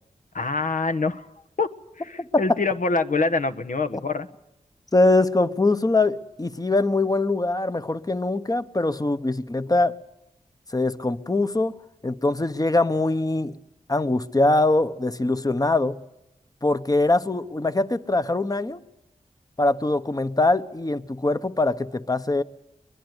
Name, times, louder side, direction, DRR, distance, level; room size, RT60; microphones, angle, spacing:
voice 1, 0.3-1.3 1.6-1.7 2.0-4.3, left 3 dB, 70° left, 1.4 m, -25 dB
voice 2, 4.9-9.9 10.7-11.7 12.0-13.5 13.9-16.0 16.6-18.8 19.6-22.4, left 2 dB, 25° left, 1.2 m, -22 dB
22.5 x 22.0 x 8.1 m
wide cardioid pair, 65°, 14 cm